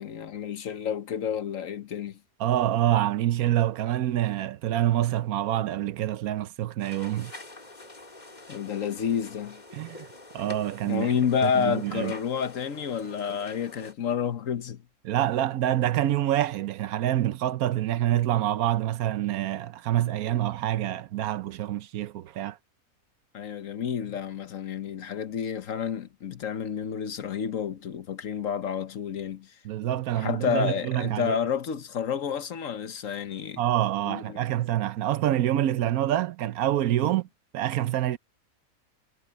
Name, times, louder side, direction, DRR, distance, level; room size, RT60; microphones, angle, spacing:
voice 1, 0.0-2.2 8.5-9.6 10.8-14.8 23.3-29.6 30.1-33.6 34.0-34.4 37.0-37.1, left 7 dB, 65° left, 1.4 m, -30 dB
voice 2, 2.4-7.4 9.7-10.1 10.3-11.1 11.4-12.1 15.0-22.6 29.6-31.4 33.6-37.3 37.5-38.2, right 12 dB, 90° right, 1.2 m, -26 dB
sound 1, 6.8-13.9, left 1 dB, 30° left, 3.0 m, -45 dB
omnidirectional pair, 1.5 m